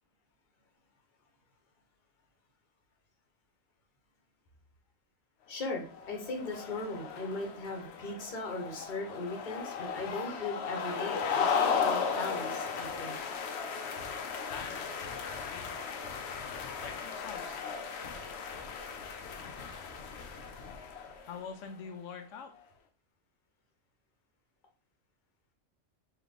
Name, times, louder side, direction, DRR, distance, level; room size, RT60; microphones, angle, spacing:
voice 1, 5.5-13.2, left 2 dB, 45° left, 1 dB, 1.1 m, -38 dB
sound 1, 5.8-21.5, left 6 dB, 65° left, 0.8 m, -36 dB
voice 2, 14.5-15.7 16.4-17.6 21.3-22.5, left 6 dB, 90° left, 5 dB, 1.0 m, -45 dB
3.7 x 3.1 x 3.3 m, 0.38 s
omnidirectional pair, 1.3 m